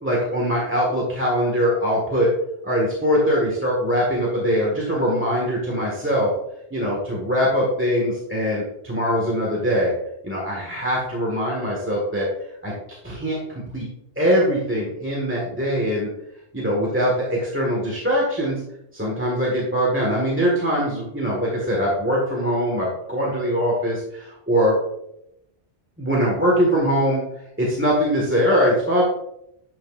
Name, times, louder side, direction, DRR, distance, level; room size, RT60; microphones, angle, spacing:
voice 1, 0.0-2.3 2.6-6.3 6.7-9.9 10.2-12.3 12.6-12.7 13.0-13.9 14.1-16.1 16.5-18.6 18.9-24.8 26.0-27.2 27.6-29.0, equal, 10° right, -4 dB, 1.6 m, -22 dB
11.5 x 5.9 x 2.5 m, 0.80 s
omnidirectional pair, 1.2 m